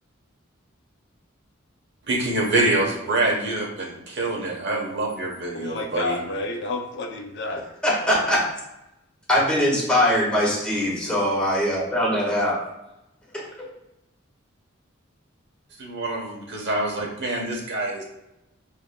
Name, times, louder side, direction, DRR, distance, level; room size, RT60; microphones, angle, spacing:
voice 1, 2.1-6.2 15.8-18.0, right 2 dB, 60° right, -1 dB, 1.0 m, -25 dB
voice 2, 5.5-7.6, left 2 dB, 60° left, 3 dB, 0.6 m, -30 dB
voice 3, 7.8-8.4 9.3-12.6 13.3-13.4, equal, 5° left, -6 dB, 1.4 m, -21 dB
6.8 x 2.7 x 2.2 m, 0.91 s
head